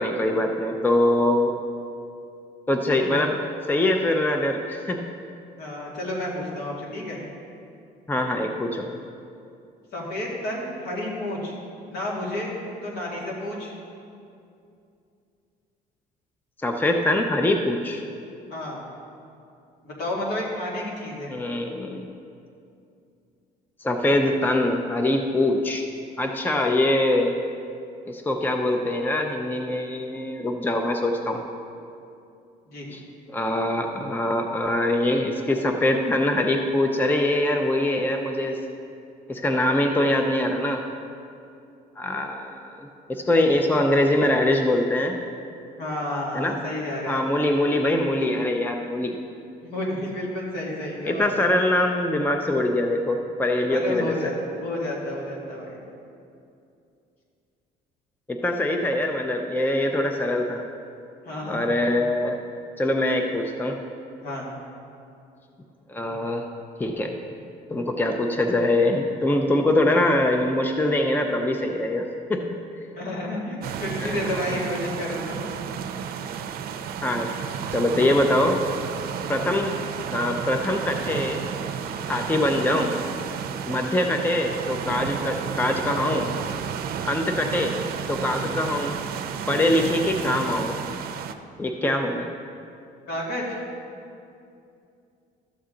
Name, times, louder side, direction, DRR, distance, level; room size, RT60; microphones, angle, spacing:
voice 1, 0.0-1.5 2.7-3.3 3.7-5.1 8.1-8.9 16.6-18.0 21.3-22.1 23.8-25.9 26.2-27.3 28.1-31.4 32.9-33.0 33.3-38.6 39.3-40.8 42.0-45.2 46.3-46.5 47.1-49.1 51.1-54.1 58.3-60.6 61.5-62.4 62.8-63.8 65.9-66.4 66.8-67.1 67.7-72.4 74.0-74.5 77.0-77.3 77.7-78.6 79.3-79.8 80.1-81.5 82.1-82.9 83.7-86.3 87.0-87.8 88.1-88.9 89.5-90.8 91.6-92.3, left 1 dB, 10° left, 3 dB, 0.6 m, -23 dB
voice 2, 5.6-7.2 9.9-11.6 11.9-13.7 18.5-18.8 19.8-21.3 32.7-32.9 45.8-47.2 49.6-51.3 53.7-55.8 61.2-61.7 64.2-64.5 73.0-75.4 93.1-93.6, left 1 dB, 70° left, -4 dB, 2.4 m, -31 dB
sound 1, 73.6-91.4, right 7 dB, 65° right, 0.6 m, -32 dB
13.0 x 6.9 x 3.8 m, 2.6 s
cardioid pair, 110°, 17 cm